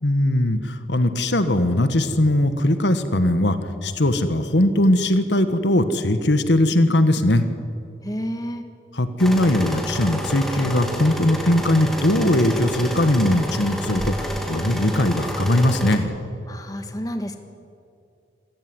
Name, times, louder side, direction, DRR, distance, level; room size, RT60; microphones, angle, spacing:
voice 1, 0.0-7.5 8.9-16.1, left 1 dB, 75° left, 9 dB, 1.5 m, -20 dB
voice 2, 8.0-8.6 16.5-17.4, equal, 20° left, 6 dB, 1.4 m, -30 dB
sound 1, 9.2-16.0, equal, ahead, 2.5 m, -29 dB
26.5 x 15.0 x 9.7 m, 2.5 s
head